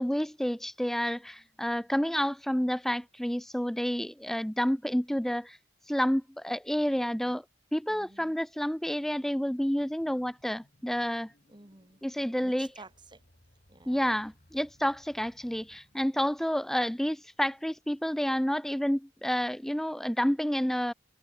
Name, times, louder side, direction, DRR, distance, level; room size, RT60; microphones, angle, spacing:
voice 1, 0.0-5.6 5.9-7.4 7.7-11.3 12.0-12.7 13.9-20.9, equal, ahead, 0.4 m, -29 dB
voice 2, 7.9-8.4 11.5-12.0 12.4-13.2 13.7-14.1, right 3 dB, 25° right, 2.5 m, -52 dB
sound 1, 8.5-8.6 9.1-16.8, equal, 40° left, 4.2 m, -64 dB
head